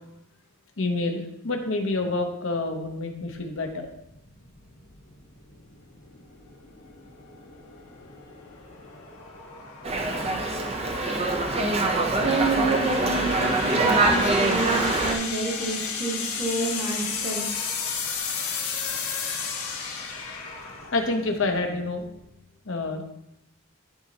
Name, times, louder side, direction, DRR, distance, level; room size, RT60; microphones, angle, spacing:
voice 1, 0.8-3.9 20.9-22.1 22.7-23.0, left 2 dB, 60° left, 4 dB, 0.8 m, -27 dB
sound 1, 3.2-22.3, left 5 dB, 90° left, 1.3 m, -35 dB
Dog, 9.8-15.2, right 2 dB, 30° right, 0.6 m, -24 dB
voice 2, 12.2-17.5, right 3 dB, 85° right, -3 dB, 2.1 m, -28 dB
11.5 x 4.1 x 2.8 m, 0.83 s
head